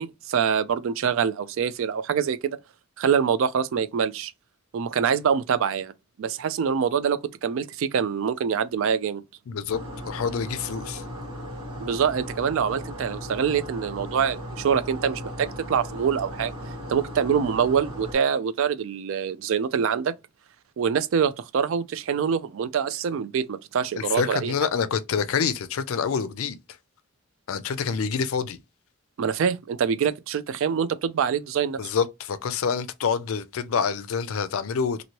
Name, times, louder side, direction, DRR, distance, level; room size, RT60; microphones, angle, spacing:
voice 1, 0.0-2.6 3.0-4.3 4.7-5.9 6.2-9.2 11.8-16.5 16.9-20.1 20.8-24.5 29.2-31.8, right 7 dB, 65° right, 0.3 m, -25 dB
voice 2, 9.5-11.0 23.9-26.6 27.5-28.6 31.8-35.0, left 6 dB, 70° left, 0.4 m, -27 dB
sound 1, 9.7-18.1, equal, 85° right, 1.1 m, -37 dB
3.0 x 2.6 x 2.8 m
head